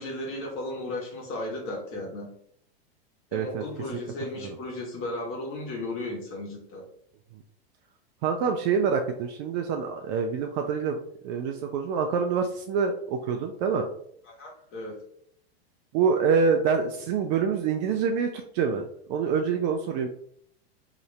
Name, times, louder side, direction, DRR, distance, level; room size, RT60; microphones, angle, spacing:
voice 1, 0.0-2.3 3.3-6.8 14.4-15.0, left 1 dB, 40° left, -1 dB, 1.3 m, -35 dB
voice 2, 3.3-3.6 4.4-4.6 8.2-11.0 11.2-13.9 15.9-20.1, right 6 dB, 45° right, 4 dB, 0.4 m, -26 dB
2.9 x 2.5 x 3.1 m, 0.66 s
hypercardioid pair, 105°, 31 cm